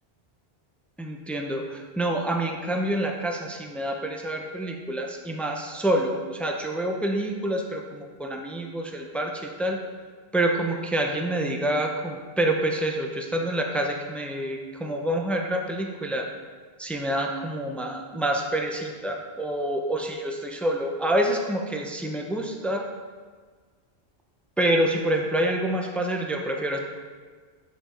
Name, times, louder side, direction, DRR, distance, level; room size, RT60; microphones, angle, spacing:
voice 1, 1.0-9.8 10.3-16.3 16.8-22.8 24.6-26.8, right 1 dB, ahead, 2 dB, 0.3 m, -27 dB
8.1 x 5.2 x 3.8 m, 1.5 s
omnidirectional pair, 1.1 m